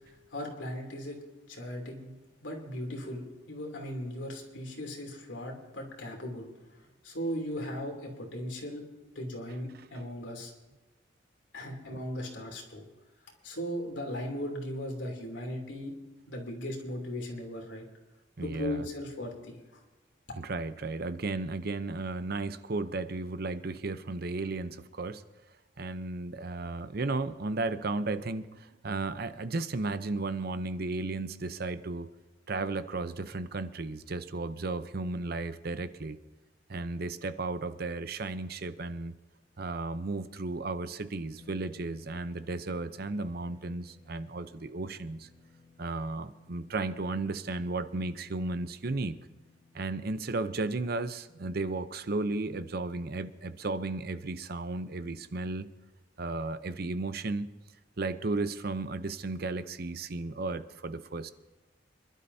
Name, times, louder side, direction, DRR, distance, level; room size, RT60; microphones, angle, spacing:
voice 1, 0.3-1.2 1.5-2.1 2.4-6.5 7.0-8.8 9.1-10.5 11.5-12.8 13.4-15.9 16.3-17.8 18.4-19.6, left 1 dB, 90° left, 1 dB, 3.0 m, -37 dB
voice 2, 18.4-18.9 20.4-25.2 25.8-32.1 32.5-36.2 36.7-39.1 39.6-45.3 45.8-49.2 49.7-55.7 56.2-57.5 58.0-61.3, right 3 dB, 55° right, 12 dB, 0.7 m, -34 dB
sound 1, 41.3-55.8, left 4 dB, 40° left, 2.0 m, -62 dB
26.5 x 12.0 x 2.8 m, 1.2 s
head